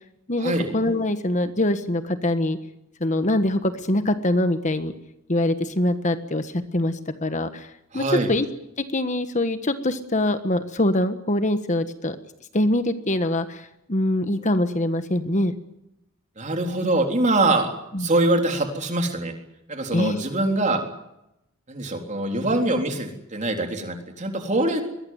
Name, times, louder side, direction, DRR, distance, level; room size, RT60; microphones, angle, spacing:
voice 1, 0.3-2.6 3.0-4.9 5.3-8.5 8.8-12.2 12.5-15.5 17.9-18.1 19.9-20.2, left 1 dB, 35° left, 10 dB, 1.4 m, -24 dB
voice 2, 7.9-8.3 16.4-17.7 18.0-19.3 19.7-20.8 21.7-24.8, right 2 dB, 35° right, 4 dB, 3.8 m, -23 dB
22.5 x 18.5 x 9.6 m, 0.86 s
head